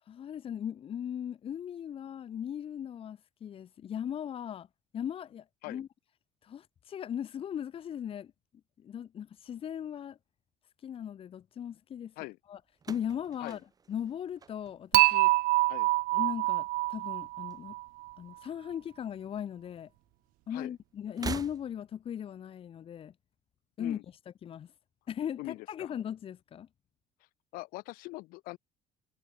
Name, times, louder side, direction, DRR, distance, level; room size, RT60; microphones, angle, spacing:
voice 1, 0.1-4.7 4.9-5.9 6.4-8.3 8.8-10.2 10.8-12.1 12.5-12.6 12.9-13.6 13.9-15.3 16.1-17.8 18.2-19.9 20.5-23.1 23.8-24.0 24.3-24.7 25.1-26.7, left 9 dB, 40° left, 1.8 m, -38 dB
sound 1, 12.8-15.1 15.4-16.0 17.1-18.1 18.3-18.5 19.6-19.7 21.1-22.1, right 5 dB, 25° right, 3.1 m, -43 dB
Dishes pots and pans / Chink clink, 14.9-18.1, right 21 dB, 75° right, 0.5 m, -26 dB
voice 2, 25.4-25.9 27.5-28.6, left 22 dB, 90° left, 4.4 m, -42 dB
cardioid pair, 135°, 14 cm